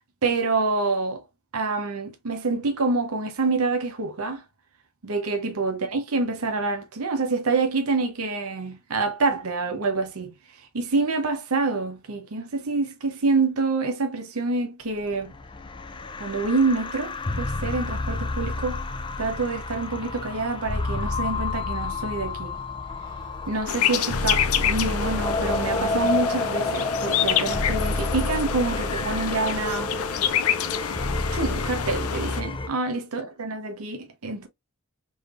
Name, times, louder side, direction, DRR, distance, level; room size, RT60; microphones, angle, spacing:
voice 1, 0.2-1.2 1.5-4.4 5.0-10.3 10.7-15.3 16.2-18.8 19.2-22.6 23.5-29.9 31.3-34.5, right 3 dB, 75° right, 0.9 m, -27 dB
sound 1, 15.1-32.7, left 2 dB, 20° left, 0.4 m, -30 dB
sound 2, 23.7-32.4, left 9 dB, 80° left, 0.5 m, -27 dB
3.9 x 3.3 x 2.5 m
head